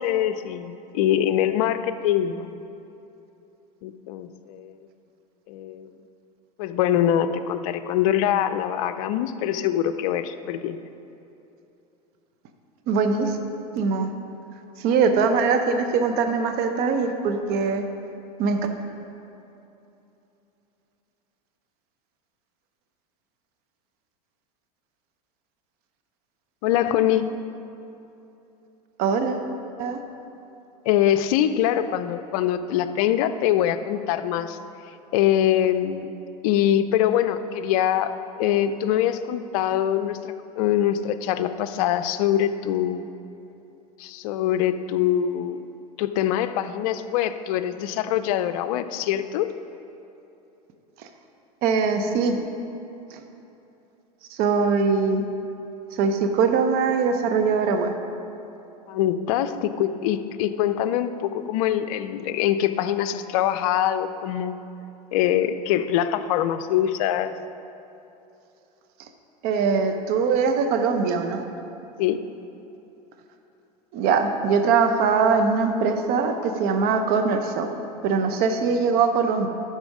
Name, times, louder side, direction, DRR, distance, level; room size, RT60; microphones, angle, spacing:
voice 1, 0.0-2.6 3.8-4.8 5.5-5.9 6.6-10.8 26.6-27.3 30.9-34.6 35.1-36.1 36.4-38.1 38.4-43.0 44.0-45.6 46.0-49.5 58.9-64.6 65.1-67.3 72.0-72.2, left 11 dB, 60° left, 11 dB, 0.5 m, -23 dB
voice 2, 12.9-13.4 13.7-14.1 14.8-17.8 18.4-18.6 29.0-29.5 29.8-30.0 51.6-52.4 53.1-53.2 54.4-55.2 55.9-57.9 69.4-71.4 73.9-77.7 78.0-79.5, right 5 dB, 50° right, 6 dB, 0.8 m, -22 dB
11.5 x 4.3 x 4.8 m, 2.9 s
hypercardioid pair, 95°, 20 cm